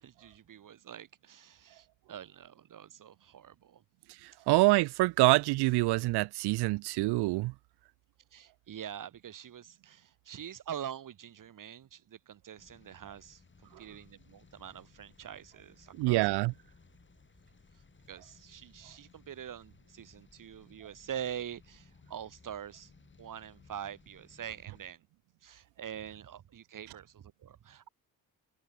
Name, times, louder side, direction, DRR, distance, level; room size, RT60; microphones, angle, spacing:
voice 1, 0.0-3.8 8.3-16.2 18.1-22.9 23.2-25.0 25.4-27.9, right 9 dB, 55° right, 1.6 m, -45 dB
voice 2, 4.5-7.5 16.0-16.5, right 21 dB, 80° right, 0.6 m, -26 dB
sound 1, 12.6-24.9, left 4 dB, 30° left, 4.6 m, -61 dB
cardioid pair, 75°, 39 cm